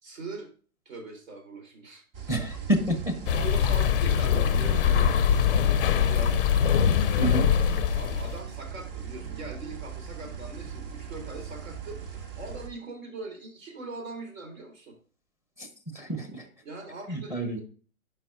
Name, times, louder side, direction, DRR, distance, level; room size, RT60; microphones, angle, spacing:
voice 1, 0.0-0.5 0.9-2.0 3.3-5.2 5.6-7.3 7.9-15.0 16.6-17.6, right 3 dB, 65° right, 3 dB, 3.5 m, -41 dB
sound 1, 2.1-12.7, right 7 dB, 40° right, 1.5 m, -39 dB
voice 2, 2.3-3.2 7.2-7.5 15.6-15.7 15.9-16.5 17.1-17.6, right 1 dB, 5° right, 6 dB, 0.9 m, -28 dB
sound 2, 3.3-8.4, left 8 dB, 40° left, 0.5 m, -23 dB
10.0 x 5.4 x 2.5 m, 0.40 s
hypercardioid pair, 135°, 43 cm